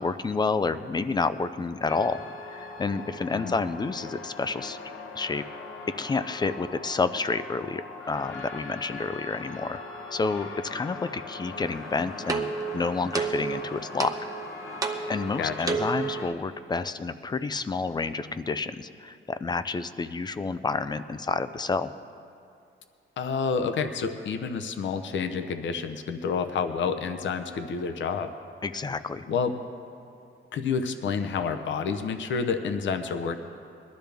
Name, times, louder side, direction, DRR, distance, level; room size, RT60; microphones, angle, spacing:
voice 1, 0.0-2.2 2.5-4.8 5.1-5.4 6.0-9.8 10.1-12.5 12.7-14.2 15.1-21.9 28.6-29.3, left 4 dB, 20° left, 12 dB, 0.3 m, -29 dB
sound 1, 1.9-16.3, left 3 dB, 80° left, 1.1 m, -41 dB
sound 2, 11.6-16.2, right 4 dB, 15° right, 0.7 m, -32 dB
voice 2, 15.4-15.8 23.2-28.3 29.3-29.6 30.5-33.3, left 5 dB, 65° left, 8 dB, 0.8 m, -29 dB
22.0 x 12.5 x 3.4 m, 2.5 s
wide cardioid pair, 180°, 21 cm